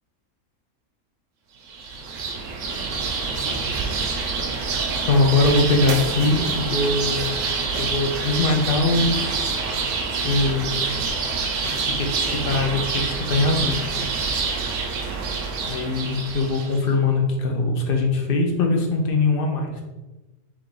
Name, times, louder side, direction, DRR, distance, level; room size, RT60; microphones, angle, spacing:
sound 1, 1.7-16.8, right 4 dB, 70° right, 0.9 m, -26 dB
voice 1, 5.1-7.3 7.7-9.6 10.2-11.1 11.6-13.8 15.7-19.8, left 3 dB, 55° left, 2 dB, 0.6 m, -22 dB
3.6 x 2.5 x 4.5 m, 1.1 s
omnidirectional pair, 1.5 m